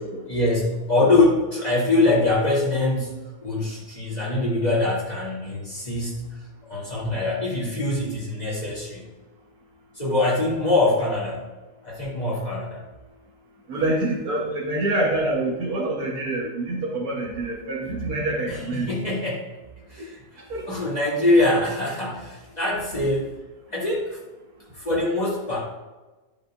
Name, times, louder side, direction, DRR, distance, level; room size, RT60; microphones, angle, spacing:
voice 1, 0.3-3.1 3.4-6.4 6.7-9.1 9.9-11.4 11.8-12.8 18.5-19.5 19.9-20.2 20.7-23.3 23.7-24.2 24.7-25.6, left 2 dB, 25° left, -6 dB, 3.1 m, -23 dB
voice 2, 13.7-18.9 20.5-20.7, right 2 dB, 65° right, -2 dB, 1.8 m, -26 dB
11.0 x 7.4 x 2.6 m, 1.2 s
omnidirectional pair, 1.7 m